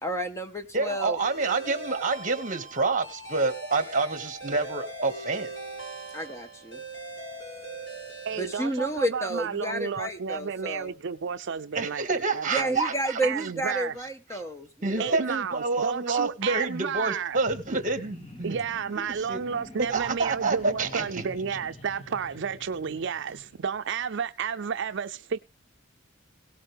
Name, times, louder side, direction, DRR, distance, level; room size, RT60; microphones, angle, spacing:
voice 1, 0.0-1.2 6.1-6.8 8.4-10.9 12.5-15.2, right 1 dB, 15° left, 1.5 m, -31 dB
voice 2, 0.7-5.5 11.7-13.5 14.3-14.4 14.8-18.6 19.3-19.4 19.9-21.2, right 3 dB, 40° right, 2.0 m, -28 dB
sound 1, 1.2-9.3, right 2 dB, 65° left, 6.6 m, -41 dB
voice 3, 8.2-12.8 13.2-14.0 15.0-17.4 18.4-25.4, right 6 dB, 65° right, 0.5 m, -32 dB
sound 2, 17.4-23.6, left 1 dB, 30° left, 2.0 m, -46 dB
18.0 x 8.4 x 3.5 m
head